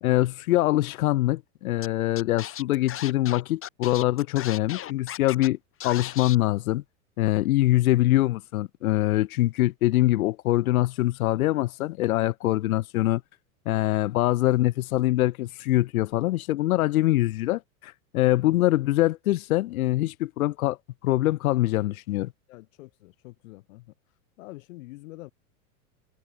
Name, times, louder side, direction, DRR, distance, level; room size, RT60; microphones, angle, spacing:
voice 1, 0.0-5.6 5.8-6.8 7.2-13.2 13.7-20.8 21.0-22.3, left 16 dB, 90° left, 0.6 m, -24 dB
Scratching (performance technique), 1.8-1.9 2.2-5.5 5.8-6.4, left 11 dB, 30° left, 2.6 m, -37 dB
voice 2, 22.5-23.9 24.4-25.3, left 20 dB, 65° left, 6.7 m, -45 dB
hypercardioid pair, 115°, 41 cm